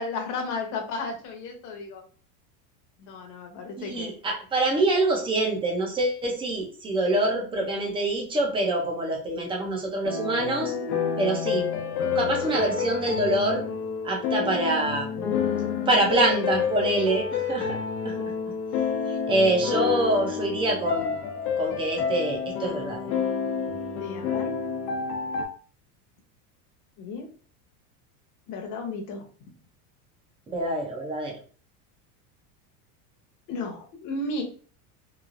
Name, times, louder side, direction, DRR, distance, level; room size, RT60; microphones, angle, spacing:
voice 1, 0.0-2.0 3.0-4.1 24.0-24.5 27.0-27.3 28.5-29.5 33.5-34.4, left 3 dB, 40° left, 2 dB, 0.8 m, -34 dB
voice 2, 3.8-10.7 11.2-11.7 12.2-13.6 14.0-15.1 15.9-17.8 18.0-18.1 19.3-21.2 21.6-23.1 30.5-31.4, right 2 dB, 10° right, 0 dB, 0.3 m, -25 dB
sound 1, 10.0-25.5, left 6 dB, 90° left, 0.8 m, -29 dB
3.1 x 2.3 x 2.4 m, 0.41 s
supercardioid pair, 145°, 47 cm